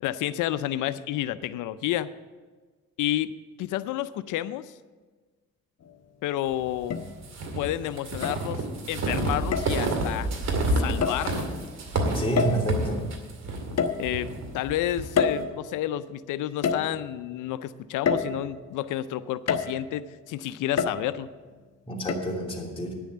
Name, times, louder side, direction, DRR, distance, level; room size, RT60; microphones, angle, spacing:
voice 1, 0.0-2.1 3.0-3.3 3.6-4.7 6.2-7.0 7.6-10.3 10.7-11.5 14.0-21.3, left 13 dB, 85° left, 14 dB, 0.5 m, -30 dB
sound 1, 5.8-5.9 6.9-7.5 8.2-8.8 9.5-9.8 11.0-11.3 12.4-12.9 13.8-14.5 15.2-16.0 16.6-17.3 18.1-18.8 19.5-20.0 20.8-21.4 22.1-22.2, left 6 dB, 60° left, 1.0 m, -28 dB
sound 2, 7.2-15.1, right 2 dB, 60° right, 2.3 m, -29 dB
voice 2, 12.0-13.0 21.9-22.9, right 2 dB, 20° left, -2 dB, 3.1 m, -28 dB
10.0 x 7.0 x 8.5 m, 1.4 s
cardioid pair, 90°, 30 cm